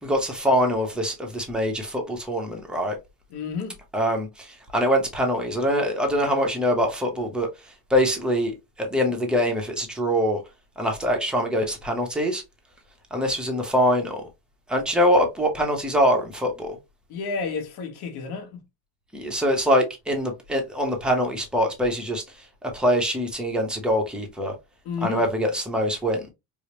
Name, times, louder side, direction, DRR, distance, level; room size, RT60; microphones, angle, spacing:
voice 1, 0.0-3.0 3.9-10.4 10.8-12.4 13.1-14.3 14.7-16.8 19.1-22.5 22.7-24.5 25.0-26.3, equal, ahead, 0.6 m, -24 dB
voice 2, 3.3-3.8 17.1-18.6 24.8-25.2, left 5 dB, 55° left, 1.2 m, -31 dB
4.9 x 2.0 x 2.9 m
cardioid pair, 155°, 48 cm